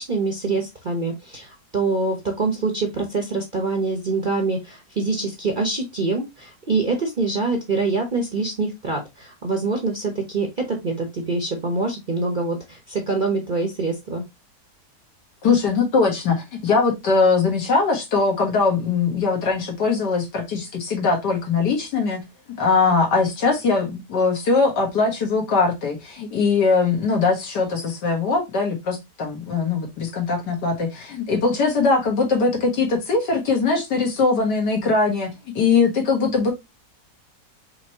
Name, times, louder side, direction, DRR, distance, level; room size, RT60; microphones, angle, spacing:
voice 1, 0.0-14.2, right 3 dB, 40° right, 0.7 m, -25 dB
voice 2, 15.4-22.2 22.6-36.5, left 4 dB, 75° left, 2.0 m, -21 dB
4.9 x 3.2 x 2.8 m
omnidirectional pair, 1.8 m